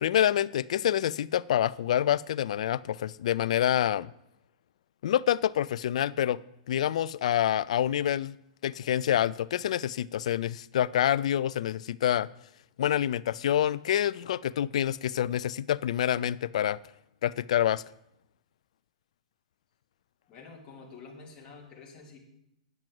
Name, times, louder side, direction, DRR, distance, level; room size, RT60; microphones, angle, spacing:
voice 1, 0.0-4.1 5.0-6.4 6.7-8.4 8.6-12.3 12.8-16.8 17.2-17.8, left 11 dB, 70° left, 20 dB, 0.4 m, -27 dB
voice 2, 20.3-22.2, left 4 dB, 30° left, 0 dB, 2.6 m, -48 dB
9.1 x 5.9 x 7.7 m, 0.80 s
hypercardioid pair, 130°, 4 cm